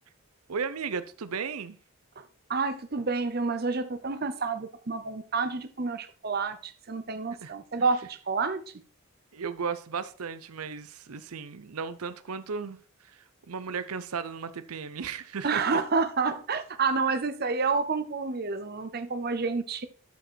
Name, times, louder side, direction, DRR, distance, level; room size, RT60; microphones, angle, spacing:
voice 1, 0.5-1.8 7.4-7.5 9.3-12.8 13.5-15.8, right 5 dB, 85° right, 0.6 m, -35 dB
voice 2, 2.5-8.6 15.4-19.9, right 4 dB, 45° right, 0.7 m, -29 dB
12.5 x 5.0 x 4.5 m
head